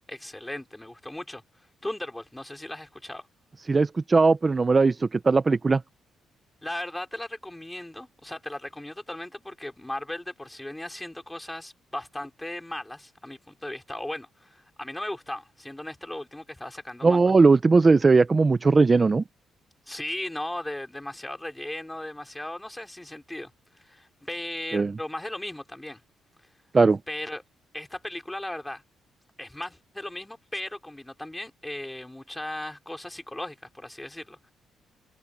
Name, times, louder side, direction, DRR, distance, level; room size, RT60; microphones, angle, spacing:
voice 1, 0.1-3.3 6.6-17.2 19.9-26.0 27.1-27.4 27.7-28.8 29.4-34.5, left 1 dB, 10° left, 3.7 m, -37 dB
voice 2, 3.7-5.8 17.0-19.2 24.7-24.9 26.7-27.0, right 4 dB, 30° right, 0.7 m, -19 dB
cardioid pair, 90°, 0 cm